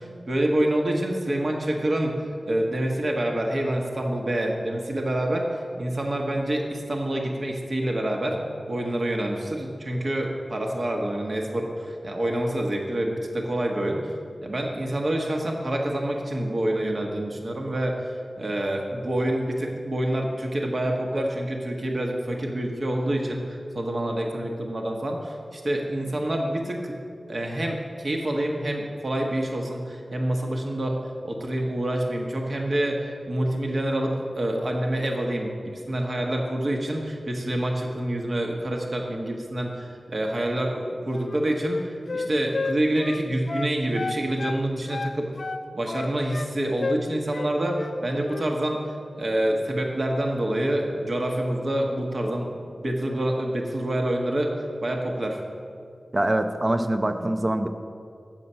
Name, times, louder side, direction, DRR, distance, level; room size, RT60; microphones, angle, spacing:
voice 1, 0.0-8.4 8.7-14.1 14.4-26.9 27.3-45.3 45.7-54.5 54.8-55.4, right 1 dB, 55° right, 1 dB, 1.2 m, -27 dB
Wind instrument woodwind instrument, 41.1-44.6 44.9-46.5 46.8-47.0 47.3-48.0 48.2-48.5, left 3 dB, 70° left, 0.3 m, -31 dB
voice 2, 56.1-57.7, right 1 dB, 30° right, 7 dB, 0.5 m, -24 dB
7.6 x 7.3 x 5.5 m, 2.4 s
wide cardioid pair, 60°, 0 cm